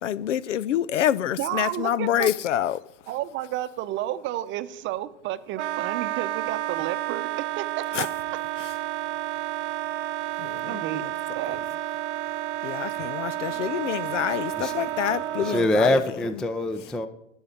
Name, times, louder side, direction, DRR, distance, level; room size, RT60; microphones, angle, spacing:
voice 1, 0.0-2.8 7.9-8.1 10.4-11.1 12.6-16.0, left 11 dB, 85° left, 0.6 m, -27 dB
voice 2, 1.4-2.3 3.1-8.1 10.6-11.8 12.8-12.9, right 14 dB, 30° right, 0.8 m, -32 dB
Wind instrument woodwind instrument, 5.5-15.7, right 14 dB, 70° right, 0.9 m, -31 dB
voice 3, 15.1-17.1, left 1 dB, ahead, 0.3 m, -25 dB
13.0 x 5.5 x 8.5 m
hypercardioid pair, 115°, 36 cm